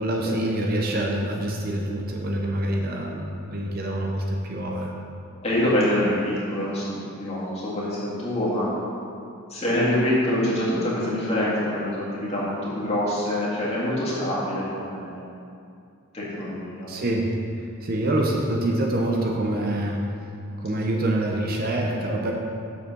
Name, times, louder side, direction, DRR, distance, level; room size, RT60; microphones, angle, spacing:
voice 1, 0.0-4.9 16.9-17.3 17.8-20.0 20.6-22.3, right 1 dB, 45° right, 0 dB, 0.7 m, -26 dB
voice 2, 5.4-8.9 9.5-15.2 16.1-16.9, left 1 dB, 30° left, -8 dB, 2.1 m, -25 dB
7.0 x 5.6 x 6.0 m, 2.5 s
head